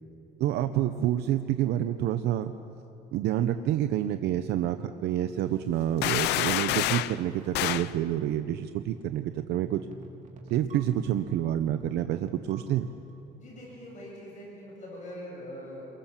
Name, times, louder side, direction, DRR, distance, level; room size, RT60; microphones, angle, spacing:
voice 1, 0.4-2.5 3.1-9.9 10.5-12.9, right 11 dB, 80° right, 9 dB, 0.8 m, -28 dB
sound 1, 6.0-7.2 7.5-7.9, left 15 dB, 85° left, 0.7 m, -27 dB
sound 2, 9.7-13.1, right 2 dB, 50° right, 3.1 m, -48 dB
voice 2, 13.4-15.8, equal, 45° left, -3 dB, 7.8 m, -43 dB
29.5 x 23.0 x 7.4 m, 2.9 s
cardioid pair, 110°, 17 cm